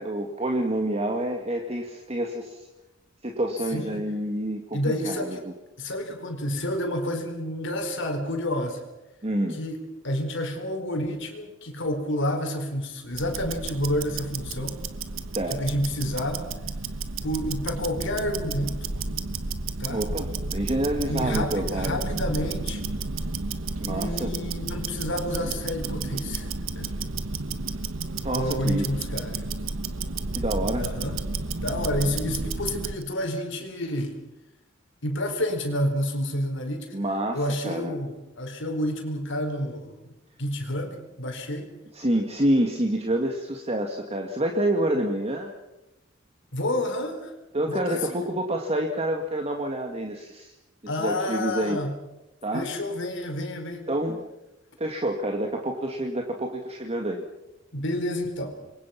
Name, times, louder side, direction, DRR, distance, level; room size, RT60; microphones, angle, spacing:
voice 1, 0.0-2.7 3.2-5.5 9.2-9.6 15.3-15.6 19.9-22.0 23.8-24.3 28.2-28.9 30.3-30.9 36.9-37.9 41.9-45.5 47.5-50.5 50.8-51.8 52.4-52.7 53.9-54.2 54.8-57.2, right 1 dB, 30° right, 2 dB, 2.1 m, -28 dB
voice 2, 3.7-4.0 4.7-5.4 5.8-8.8 9.5-14.8 15.5-16.5 17.2-18.9 19.8-20.0 21.1-22.8 23.8-26.5 26.7-26.9 28.3-29.5 30.7-31.2 31.6-34.1 35.0-36.9 37.3-40.1 40.4-41.7 46.5-47.3 47.7-48.2 50.9-51.9 52.5-53.8 57.7-58.6, left 1 dB, 65° left, 4 dB, 4.8 m, -29 dB
Tick-tock, 13.1-33.0, right 3 dB, 75° right, 1.4 m, -32 dB
28.0 x 23.0 x 6.0 m, 0.97 s
head